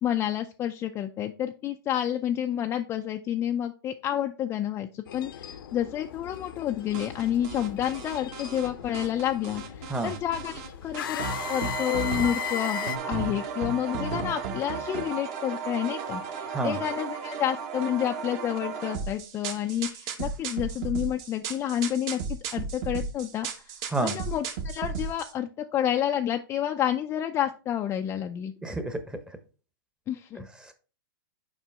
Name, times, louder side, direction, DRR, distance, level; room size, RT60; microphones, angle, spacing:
voice 1, 0.0-22.2 22.5-23.5 24.0-28.5 30.1-30.5, left 10 dB, 20° left, 0.4 m, -29 dB
sound 1, 5.1-13.0, left 9 dB, 75° left, 0.8 m, -37 dB
sound 2, 6.9-8.7 8.9-10.7 10.9-25.3, right 5 dB, 45° right, 1.3 m, -34 dB
voice 2, 28.6-29.0 30.3-30.7, right 2 dB, 5° right, 0.9 m, -29 dB
7.3 x 5.1 x 3.4 m
hypercardioid pair, 130°, 12 cm